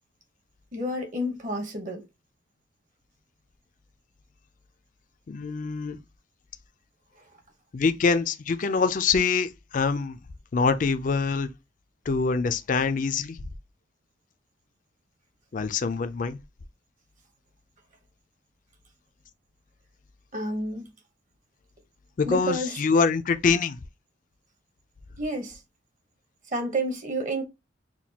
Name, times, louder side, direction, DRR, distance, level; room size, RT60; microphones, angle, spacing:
voice 1, 0.7-2.0 20.3-20.9 22.3-22.8 25.2-25.6 26.5-27.4, right 1 dB, 40° right, 0.9 m, -30 dB
voice 2, 5.3-6.0 7.7-10.2 10.5-11.5 12.1-13.4 15.5-16.4 22.2-23.8, left 5 dB, 40° left, 0.4 m, -24 dB
5.8 x 2.3 x 2.8 m
head